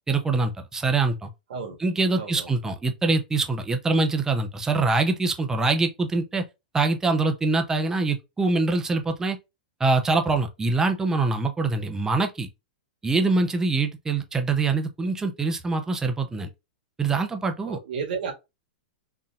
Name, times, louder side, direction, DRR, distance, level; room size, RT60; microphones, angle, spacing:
voice 1, 0.0-1.3 1.8-6.4 6.7-9.4 9.8-12.5 13.0-16.5 17.0-17.8, right 3 dB, 10° right, 0.6 m, -24 dB
voice 2, 2.1-2.5 17.6-18.3, right 6 dB, 70° right, 1.6 m, -32 dB
3.9 x 2.7 x 2.3 m
hypercardioid pair, 135°, 5 cm